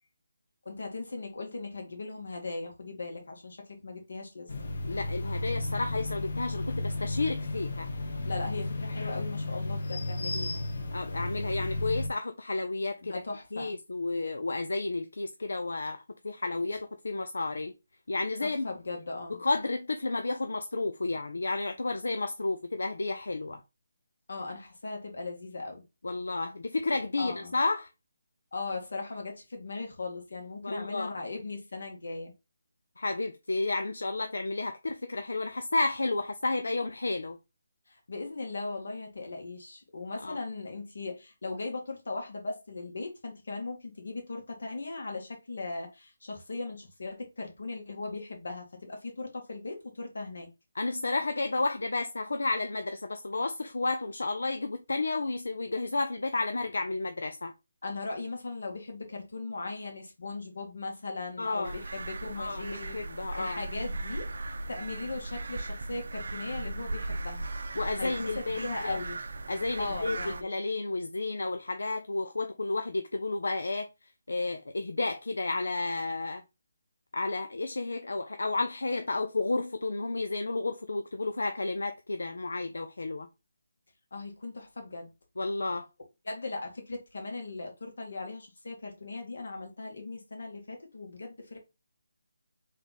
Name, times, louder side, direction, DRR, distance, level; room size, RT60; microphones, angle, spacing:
voice 1, 0.7-4.5 8.2-10.7 13.0-13.7 18.4-19.4 24.3-25.8 27.2-27.5 28.5-32.3 37.9-50.5 57.8-63.0 63.4-64.3 64.7-67.5 68.0-69.2 69.8-70.5 84.1-85.1 86.2-91.6, left 3 dB, 70° left, 2.0 m, -38 dB
sound 1, 4.5-12.1, left 2 dB, 50° left, 1.1 m, -33 dB
voice 2, 4.8-7.9 10.9-13.1 13.5-17.7 18.1-18.7 19.3-23.6 26.0-27.9 30.6-31.1 33.0-37.4 40.2-40.4 50.8-57.5 61.4-61.8 62.4-63.6 67.8-69.0 69.5-73.9 74.3-76.4 77.1-83.3 85.4-85.9, left 3 dB, 90° left, 0.5 m, -32 dB
sound 2, 61.6-70.4, right 2 dB, 65° right, 0.6 m, -37 dB
3.7 x 3.3 x 4.1 m
hypercardioid pair, 170°, 0 cm